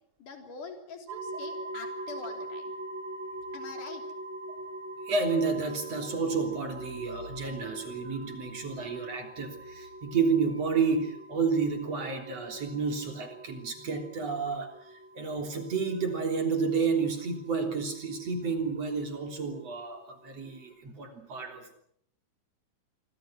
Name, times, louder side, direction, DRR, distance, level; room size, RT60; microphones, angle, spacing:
voice 1, 0.2-2.7 3.5-4.0, left 5 dB, 75° left, 4 dB, 4.9 m, -44 dB
sound 1, 1.1-20.7, right 1 dB, 65° right, 6.9 m, -44 dB
voice 2, 5.0-14.8 15.2-21.7, right 5 dB, 50° right, 4 dB, 4.5 m, -30 dB
26.5 x 24.0 x 6.4 m, 0.67 s
omnidirectional pair, 3.6 m